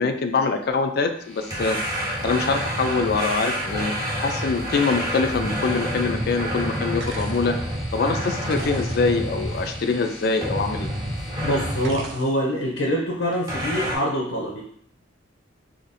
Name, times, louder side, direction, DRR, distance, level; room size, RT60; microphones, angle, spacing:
voice 1, 0.0-4.0 4.2-7.6 7.9-10.9, left 4 dB, 50° left, 7 dB, 0.4 m, -24 dB
sound 1, 1.2-11.8, left 1 dB, 5° left, 0.6 m, -42 dB
sound 2, 1.5-10.0 10.4-12.1 13.5-14.0, equal, 20° right, 0.8 m, -28 dB
sound 3, 4.4-4.6 5.4-5.5 7.0-7.6 8.4-9.4 9.9-10.6 11.8-12.5 13.3-13.6, right 2 dB, 60° right, 0.7 m, -39 dB
voice 2, 11.4-14.6, equal, 80° left, -3 dB, 0.7 m, -25 dB
2.8 x 2.6 x 4.1 m, 0.64 s
head